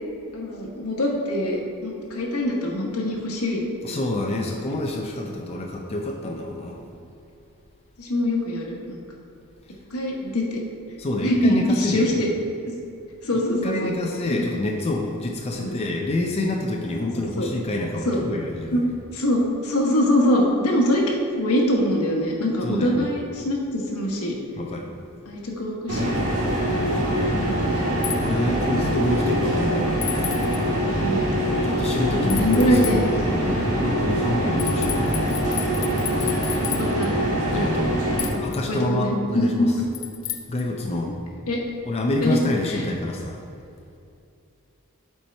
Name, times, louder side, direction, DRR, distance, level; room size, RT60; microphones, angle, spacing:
voice 1, 0.3-4.0 4.3-4.7 8.0-9.0 9.9-10.6 11.2-12.3 13.2-13.9 14.3-14.4 15.5-15.8 16.9-17.5 18.0-18.2 18.7-18.8 19.1-24.4 25.3-26.1 26.8-27.0 27.3-27.9 30.9-31.3 32.1-33.7 36.5-37.1 38.7-39.9 40.9-41.0 41.5-41.6 42.2-42.4 42.7-42.8, left 1 dB, 85° left, -1 dB, 1.3 m, -24 dB
voice 2, 3.8-6.8 11.0-12.2 13.3-18.9 22.6-23.1 24.6-24.9 28.2-30.0 31.6-33.1 33.7-35.1 37.5-37.9 38.3-39.7 40.5-41.2 41.8-43.4, left 2 dB, 30° left, 0 dB, 0.5 m, -27 dB
sound 1, 25.9-38.3, equal, 70° right, 1.5 m, -23 dB
sound 2, 28.0-28.2 30.0-30.6 32.3-33.0 34.6-37.1 38.2-38.6 39.9-40.6, left 13 dB, 70° left, 0.7 m, -32 dB
7.3 x 4.6 x 4.4 m, 2.5 s
head